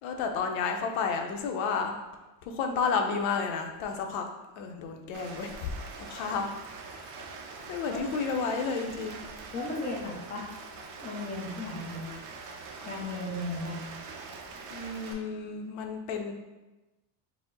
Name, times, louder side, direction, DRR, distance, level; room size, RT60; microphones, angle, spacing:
voice 1, 0.0-1.9 2.4-4.3 4.6-5.7 6.1-6.5 6.9-7.1 7.7-9.2 12.1-12.2 14.7-16.3, left 5 dB, 85° left, 4 dB, 0.7 m, -31 dB
Rain, 5.1-15.1, right 4 dB, 40° right, 0.5 m, -44 dB
voice 2, 9.5-10.5 11.0-12.1 12.8-13.9, left 2 dB, 20° left, -4 dB, 0.6 m, -35 dB
4.8 x 2.1 x 3.8 m, 1.1 s
cardioid pair, 175°, 47 cm